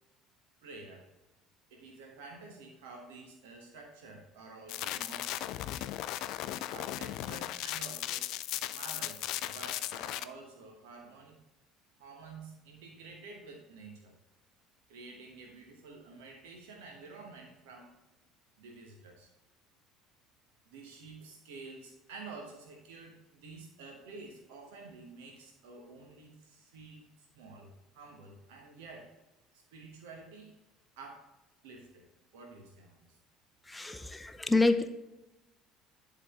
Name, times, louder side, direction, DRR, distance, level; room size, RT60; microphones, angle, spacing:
voice 1, 0.6-1.1 1.7-5.3 6.7-8.3 8.7-11.4 12.0-14.2 14.9-18.0 18.6-19.3 20.7-29.2 29.5-30.5 31.0-31.4 31.6-33.2, right 3 dB, 65° right, 1 dB, 1.1 m, -50 dB
sound 1, 4.7-10.2, left 14 dB, 55° left, 0.3 m, -37 dB
voice 2, 33.7-34.9, left 2 dB, 10° left, 9 dB, 0.7 m, -28 dB
11.0 x 3.9 x 3.6 m, 0.99 s
figure-of-eight pair, 60°, 0 cm